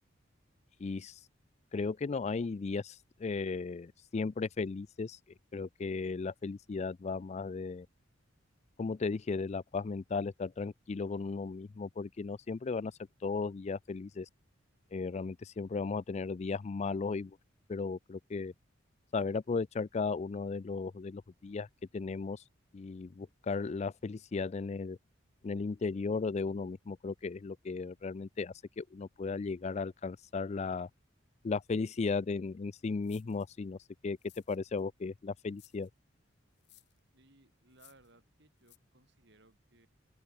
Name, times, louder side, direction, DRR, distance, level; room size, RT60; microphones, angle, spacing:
voice 1, 0.8-1.2 1.7-5.2 5.5-7.9 8.8-12.9 13.2-14.3 14.9-17.4 17.7-18.5 19.1-21.7 21.9-22.4 22.7-25.0 25.4-30.9 31.4-33.8 34.0-34.2 34.5-35.9, left 4 dB, 35° left, 0.4 m, -35 dB
sound 1, 33.0-33.5 34.2-34.8 35.5-35.9 36.6-37.0 37.7-38.1 38.6-38.8, left 16 dB, 60° left, 2.3 m, -61 dB
voice 2, 37.1-39.9, right 2 dB, 60° right, 5.9 m, -64 dB
open air
head